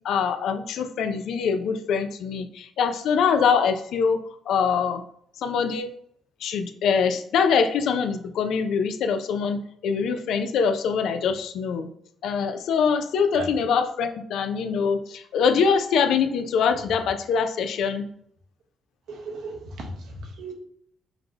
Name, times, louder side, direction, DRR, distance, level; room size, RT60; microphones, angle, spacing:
voice 1, 0.0-4.2 4.5-5.0 5.4-5.9 6.4-11.9 12.2-18.0, left 6 dB, 75° left, 8 dB, 0.5 m, -24 dB
voice 2, 19.1-20.5, right 3 dB, 80° right, 1 dB, 1.1 m, -36 dB
5.8 x 2.2 x 3.9 m, 0.67 s
cardioid pair, 90°, 0 cm